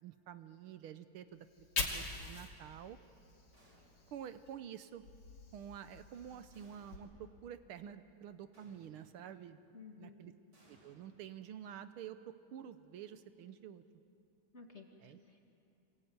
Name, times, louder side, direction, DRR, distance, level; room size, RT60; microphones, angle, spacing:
voice 1, 0.0-3.0 4.1-5.0 5.5-9.6 10.0-10.3 10.7-13.8 15.0-15.2, right 9 dB, 80° right, 11 dB, 1.7 m, -49 dB
Fire, 1.4-4.5 4.9-7.0, left 4 dB, 90° left, 3.8 m, -44 dB
sound 1, 3.5-4.3 6.5-7.3 8.5-9.3 10.5-11.7, equal, 50° right, 6.5 m, -66 dB
voice 2, 9.7-10.3 14.5-15.5, left 5 dB, 30° left, 2 dB, 2.2 m, -55 dB
26.0 x 21.5 x 9.5 m, 2.6 s
omnidirectional pair, 2.4 m